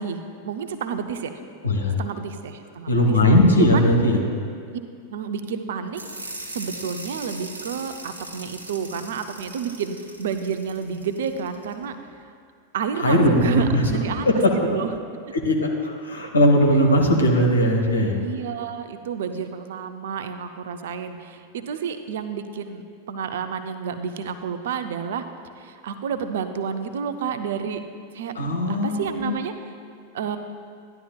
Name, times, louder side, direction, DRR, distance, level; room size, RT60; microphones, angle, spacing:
voice 1, 0.0-1.3 2.0-3.0 3.6-3.9 5.1-6.0 6.5-12.0 12.7-14.3 14.5-14.9 18.2-25.2 25.6-27.8 28.1-28.3 28.7-29.7 30.1-30.4, right 7 dB, 60° right, 9 dB, 0.5 m, -30 dB
voice 2, 1.6-2.0 2.9-4.2 13.0-13.9 14.3-14.4 15.3-18.2 28.3-29.3, equal, 75° left, 1 dB, 1.2 m, -19 dB
sound 1, 5.9-11.7, right 1 dB, 80° right, 1.0 m, -39 dB
12.0 x 10.5 x 2.4 m, 2.2 s
figure-of-eight pair, 90°, 0 cm